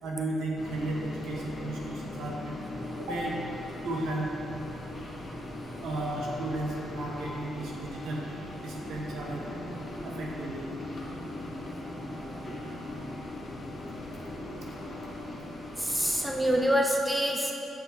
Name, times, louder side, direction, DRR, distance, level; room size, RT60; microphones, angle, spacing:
voice 1, 0.0-2.5 3.0-3.3 3.8-4.3 5.8-8.2 8.6-9.4 10.0-10.7, right 2 dB, 80° right, -2 dB, 1.4 m, -34 dB
sound 1, 0.5-16.6, left 1 dB, 40° left, 1.6 m, -39 dB
voice 2, 15.8-17.5, equal, 5° right, 0 dB, 0.7 m, -26 dB
7.7 x 5.5 x 4.5 m, 3.0 s
cardioid pair, 90°, 0 cm